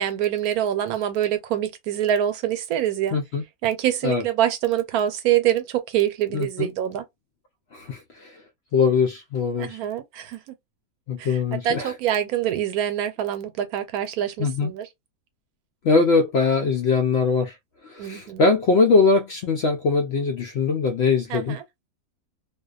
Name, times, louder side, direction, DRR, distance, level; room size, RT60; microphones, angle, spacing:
voice 1, 0.0-3.2 3.6-7.0 9.6-10.4 11.2-14.9 18.0-18.4 21.3-21.6, right 11 dB, 90° right, 1.1 m, -25 dB
voice 2, 3.1-3.4 4.0-4.2 6.3-6.7 7.7-8.4 8.7-9.8 11.1-11.9 14.4-14.7 15.8-17.5 17.8-21.6, left 4 dB, 70° left, 0.6 m, -21 dB
2.5 x 2.2 x 2.3 m
omnidirectional pair, 1.5 m